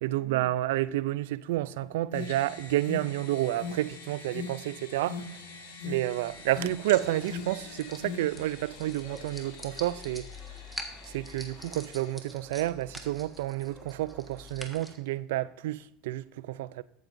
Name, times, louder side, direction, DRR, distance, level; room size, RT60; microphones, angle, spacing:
voice 1, 0.0-5.5 5.8-10.3 11.0-16.8, right 15 dB, 85° right, 0.4 m, -30 dB
Alarm, 1.5-8.2, left 5 dB, 65° left, 2.2 m, -41 dB
sound 1, 2.1-12.1, left 5 dB, 85° left, 2.1 m, -48 dB
sound 2, 6.2-15.0, equal, ahead, 1.4 m, -46 dB
14.0 x 8.0 x 2.6 m
supercardioid pair, 105°, 0 cm